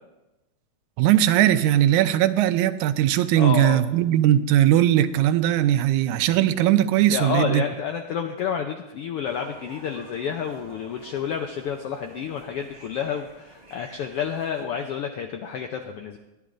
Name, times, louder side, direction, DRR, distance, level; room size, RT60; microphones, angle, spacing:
voice 1, 1.0-7.6, right 12 dB, 90° right, 2.0 m, -19 dB
voice 2, 3.4-3.8 7.0-16.2, left 7 dB, 80° left, 1.3 m, -29 dB
sound 1, 9.2-14.7, right 2 dB, 30° right, 0.7 m, -49 dB
20.5 x 11.5 x 2.5 m
omnidirectional pair, 3.4 m